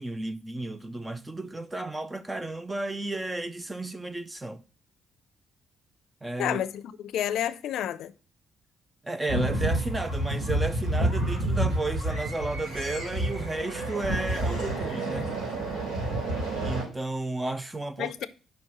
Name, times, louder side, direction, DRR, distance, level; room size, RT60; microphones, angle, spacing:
voice 1, 0.0-4.6 6.2-6.6 9.0-15.3 16.6-18.3, right 2 dB, 10° right, 0.3 m, -33 dB
voice 2, 6.4-8.1 18.0-18.3, left 10 dB, 70° left, 0.5 m, -30 dB
sound 1, 9.3-16.8, right 1 dB, 90° right, 4.0 m, -29 dB
5.1 x 4.7 x 5.3 m
cardioid pair, 175°, 0 cm